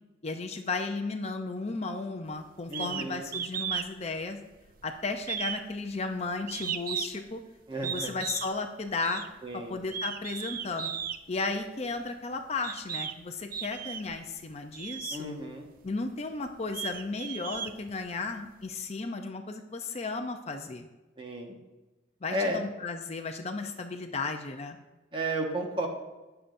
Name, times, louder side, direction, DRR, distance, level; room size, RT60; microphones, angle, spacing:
voice 1, 0.2-4.4 4.8-7.4 7.8-9.2 9.5-10.9 11.3-15.3 15.8-20.9 22.2-24.8, left 3 dB, 35° left, 6 dB, 0.6 m, -34 dB
voice 2, 2.7-3.3 7.7-8.2 9.4-9.8 15.1-15.7 21.2-21.5 22.3-22.6 25.1-25.9, right 1 dB, 25° right, 1 dB, 1.4 m, -33 dB
sound 1, 2.7-3.1 3.3-3.9 4.2-4.8 5.2-7.3 7.8-8.5 9.0-9.3 9.8-11.2 12.0-12.1 12.6-13.2 13.5-14.2 14.7-15.2 15.8-15.9 16.5-18.3, right 8 dB, 50° right, 0.5 m, -35 dB
19.0 x 6.9 x 2.6 m, 1.1 s
head